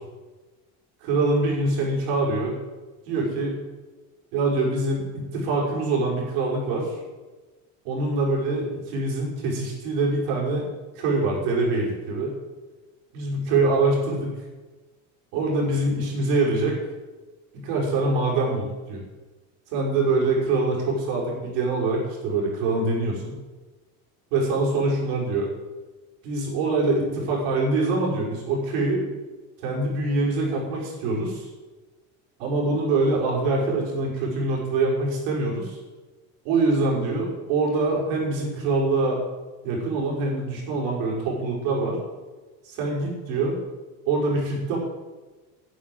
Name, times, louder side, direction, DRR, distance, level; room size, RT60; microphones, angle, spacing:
voice 1, 1.0-2.6 3.1-3.6 4.3-6.9 7.8-10.6 11.0-12.3 13.1-14.3 15.3-16.8 17.5-19.0 19.7-23.3 24.3-25.5 26.2-29.0 29.6-31.5 32.4-35.8 36.4-39.2 39.6-42.0 42.6-43.6 44.1-44.8, right 3 dB, 85° right, -2 dB, 5.9 m, -24 dB
11.5 x 10.5 x 7.9 m, 1.2 s
cardioid pair, 145°, 39 cm